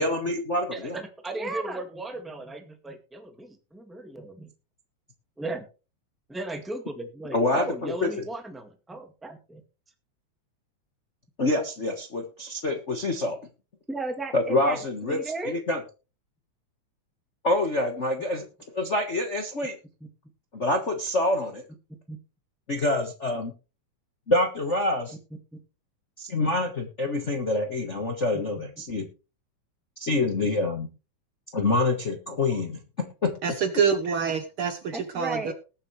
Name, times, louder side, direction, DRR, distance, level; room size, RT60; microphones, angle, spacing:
voice 1, 0.0-1.0 7.3-8.2 11.4-13.4 14.3-15.8 17.4-18.5 18.7-19.8 20.5-21.6 22.7-23.5 24.3-25.2 26.2-29.1 30.0-30.9 31.5-32.8 33.2-33.3, left 2 dB, 40° left, 3 dB, 1.1 m, -26 dB
voice 2, 0.7-4.5 5.4-5.6 6.3-9.6 13.9-14.8 15.1-15.5 22.1-22.2 25.5-25.6 34.9-35.5, right 2 dB, ahead, 5 dB, 1.2 m, -35 dB
voice 3, 33.4-35.5, right 6 dB, 60° right, 8 dB, 1.5 m, -26 dB
20.0 x 7.5 x 3.2 m, 0.32 s
omnidirectional pair, 3.4 m